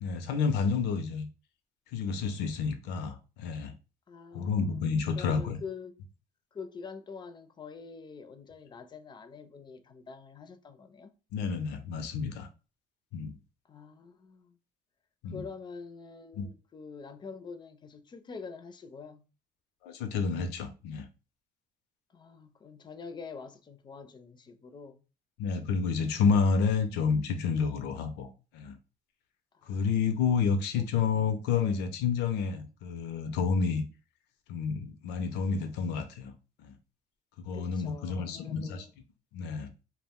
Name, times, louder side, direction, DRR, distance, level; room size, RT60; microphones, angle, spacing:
voice 1, 0.0-1.3 1.9-3.7 4.3-5.6 11.3-12.5 13.1-13.3 15.2-15.4 16.4-16.5 19.8-21.1 25.4-28.7 29.7-33.8 34.5-36.3 36.6-36.8 37.4-38.9 39.3-39.7, left 5 dB, 85° left, 0.5 m, -29 dB
voice 2, 4.1-4.7 5.1-6.0 6.5-11.1 13.7-14.6 15.3-19.3 22.1-25.0 29.5-30.2 30.7-30.8 31.5-31.8 37.5-38.9, left 5 dB, 25° left, 0.4 m, -46 dB
2.4 x 2.0 x 3.5 m
cardioid pair, 110°, 17 cm